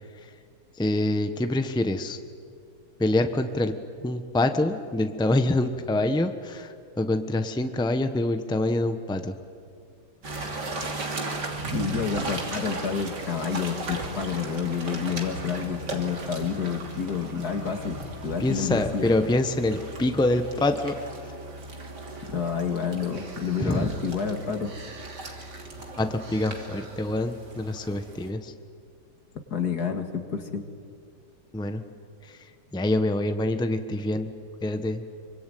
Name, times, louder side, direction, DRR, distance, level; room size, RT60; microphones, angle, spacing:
voice 1, 0.8-2.2 3.0-3.7 4.0-9.3 18.4-21.0 23.6-23.9 26.0-28.5 31.5-31.8 32.2-32.4 32.7-34.3 34.6-35.0, left 1 dB, 5° left, 8 dB, 1.0 m, -25 dB
sound 1, 10.2-28.3, right 2 dB, 85° right, 3.5 m, -36 dB
voice 2, 11.7-19.1 22.3-24.7 29.5-30.6, left 6 dB, 65° left, 5 dB, 2.7 m, -29 dB
25.0 x 24.5 x 9.3 m, 2.2 s
omnidirectional pair, 1.8 m